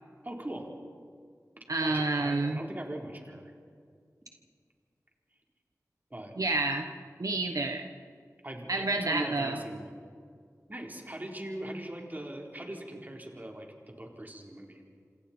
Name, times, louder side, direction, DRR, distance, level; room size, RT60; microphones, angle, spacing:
voice 1, 0.2-0.7 1.8-3.5 6.1-6.3 8.4-9.9 10.7-14.8, right 1 dB, 30° right, 0 dB, 3.9 m, -40 dB
voice 2, 1.7-2.6 6.4-6.9 7.2-7.9 8.7-9.6, right 2 dB, 75° right, 4 dB, 1.2 m, -29 dB
27.5 x 27.0 x 4.4 m, 2.1 s
wide cardioid pair, 60°, 6 cm